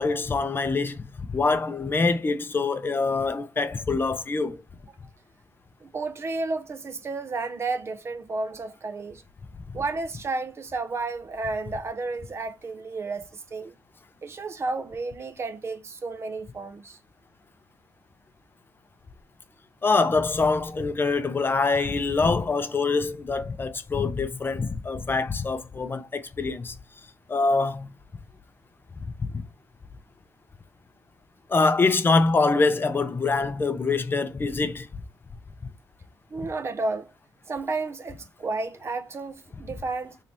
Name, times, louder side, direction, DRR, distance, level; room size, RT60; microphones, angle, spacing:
voice 1, 0.0-4.6 19.8-26.8 27.3-27.9 29.2-29.4 31.5-34.9, left 3 dB, 30° left, 0.5 m, -24 dB
voice 2, 5.8-9.2 9.7-13.7 14.2-17.0 36.3-37.1 37.5-40.2, right 3 dB, 35° right, 0.5 m, -32 dB
3.2 x 2.9 x 4.0 m
cardioid pair, 110°, 8 cm